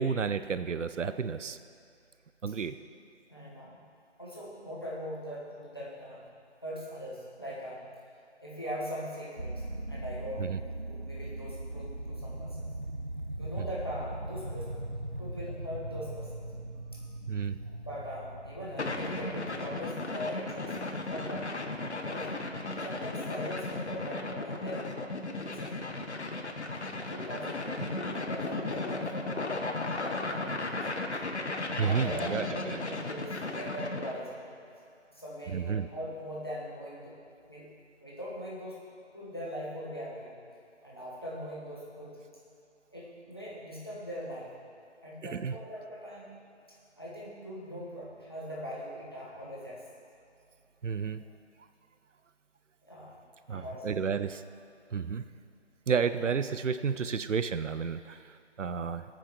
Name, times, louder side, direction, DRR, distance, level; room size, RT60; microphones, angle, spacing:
voice 1, 0.0-1.6 2.4-2.8 10.4-10.6 13.6-13.7 17.3-17.6 31.8-32.8 35.5-35.9 45.2-45.5 50.8-51.2 53.5-54.4 54.9-55.2 55.9-59.1, right 6 dB, 90° right, 12 dB, 0.6 m, -31 dB
voice 2, 3.3-3.8 4.2-6.3 6.6-7.8 8.4-10.5 10.8-12.7 13.4-14.7 15.2-16.5 17.6-20.8 21.1-21.7 22.0-22.4 22.8-24.9 25.4-26.1 27.1-29.5 29.9-30.8 31.7-34.5 35.1-37.2 37.5-37.7 38.0-38.8 39.1-40.4 40.8-42.2 42.9-44.5 45.0-46.3 47.0-49.8 52.9-53.1 53.5-53.9, equal, 20° left, -7 dB, 1.2 m, -41 dB
sound 1, 9.4-20.8, right 1 dB, 45° right, 0.5 m, -40 dB
sound 2, 18.8-34.2, left 2 dB, 70° left, 1.1 m, -35 dB
19.0 x 9.0 x 3.0 m, 2.5 s
figure-of-eight pair, 180°, 36 cm